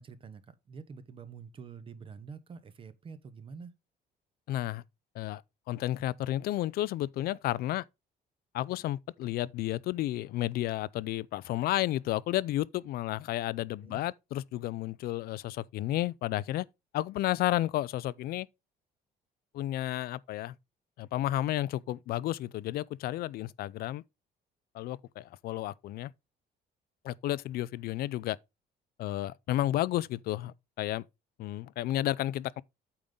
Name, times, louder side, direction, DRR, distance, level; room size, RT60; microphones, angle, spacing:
voice 1, 0.0-3.7 13.8-14.0, right 5 dB, 30° right, 0.8 m, -47 dB
voice 2, 4.5-4.8 5.2-5.4 5.7-7.8 8.5-16.6 16.9-18.5 19.5-20.5 21.0-24.0 24.7-26.1 27.0-28.4 29.0-31.0 31.4-32.6, left 14 dB, 65° left, 0.4 m, -32 dB
8.7 x 3.8 x 5.3 m
cardioid pair, 145°, 17 cm